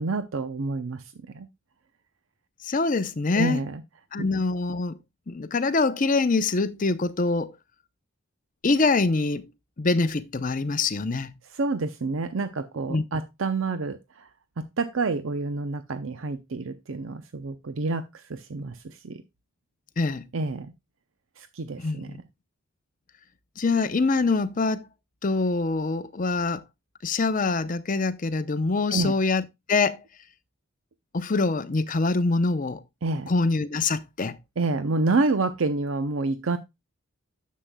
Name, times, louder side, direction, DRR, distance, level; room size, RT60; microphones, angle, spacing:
voice 1, 0.0-1.5 3.3-3.8 11.5-14.3 14.6-19.2 20.3-20.7 21.4-22.2 28.9-29.1 33.0-33.3 34.6-36.6, right 3 dB, 70° right, 0.6 m, -28 dB
voice 2, 2.6-3.6 4.1-5.0 5.3-7.5 8.6-9.4 9.8-11.3 12.9-13.0 20.0-20.3 21.8-22.2 23.6-24.9 25.2-26.6 27.0-29.4 29.7-30.0 31.1-32.8 33.3-34.4, left 3 dB, 40° left, 0.6 m, -24 dB
10.0 x 7.5 x 2.2 m
head